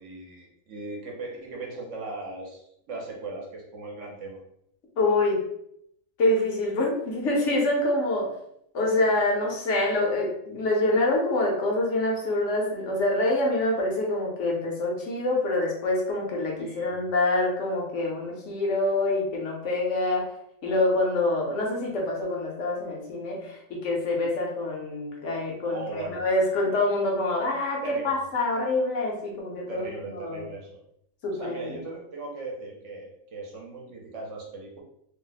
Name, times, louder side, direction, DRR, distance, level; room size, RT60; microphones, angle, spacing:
voice 1, 0.0-4.4 16.6-17.1 25.7-26.2 27.8-28.1 29.7-30.8 31.3-34.8, right 3 dB, 65° right, -1 dB, 1.0 m, -38 dB
voice 2, 5.0-5.4 6.2-8.3 8.7-20.3 20.6-30.5 31.2-31.8, left 2 dB, 65° left, -1 dB, 1.0 m, -26 dB
2.7 x 2.1 x 3.9 m, 0.75 s
omnidirectional pair, 1.4 m